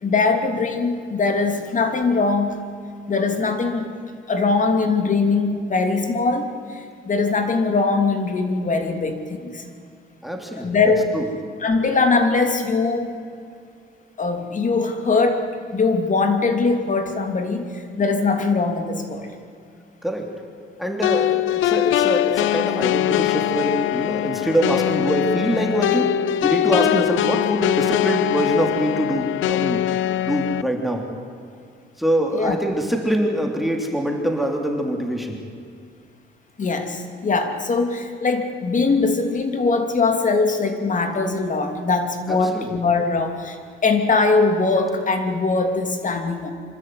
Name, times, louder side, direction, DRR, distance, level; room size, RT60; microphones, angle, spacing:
voice 1, 0.0-2.6 3.1-3.9 4.3-9.6 10.6-11.2 11.6-13.2 14.2-15.5 15.7-19.3 32.3-32.6 36.6-46.5, left 3 dB, 40° left, 6 dB, 3.0 m, -21 dB
voice 2, 10.2-10.7 11.1-11.3 20.0-20.3 20.8-29.8 30.2-31.0 32.0-35.4 42.3-42.7, equal, ahead, 2 dB, 3.3 m, -24 dB
sound 1, 21.0-30.6, left 13 dB, 80° left, 0.6 m, -22 dB
25.5 x 13.0 x 9.5 m, 2.4 s
cardioid pair, 90°, 20 cm